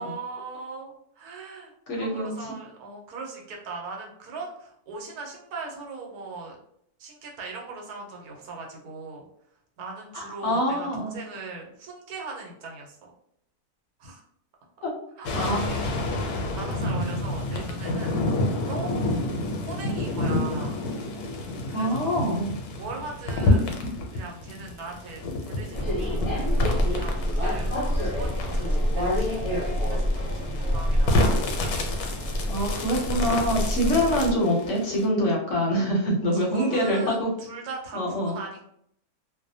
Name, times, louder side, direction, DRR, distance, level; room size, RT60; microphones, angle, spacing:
voice 1, 0.0-6.6 7.0-9.2 9.8-13.1 14.0-14.2 15.2-16.1 16.5-18.2 18.6-19.2 19.6-20.8 21.7-22.3 22.8-23.8 24.1-26.5 26.9-31.4 33.6-33.8 36.3-38.7, right 4 dB, 80° right, 0 dB, 1.2 m, -40 dB
voice 2, 1.9-2.3 10.1-11.1 14.8-14.9 15.3-15.7 21.7-22.6 32.5-37.3 37.9-38.4, equal, 60° left, -2 dB, 0.9 m, -25 dB
sound 1, 15.2-35.0, left 2 dB, 85° left, 1.1 m, -29 dB
sound 2, 25.7-34.4, equal, 30° left, 0.6 m, -26 dB
2.6 x 2.1 x 2.6 m, 0.71 s
omnidirectional pair, 1.6 m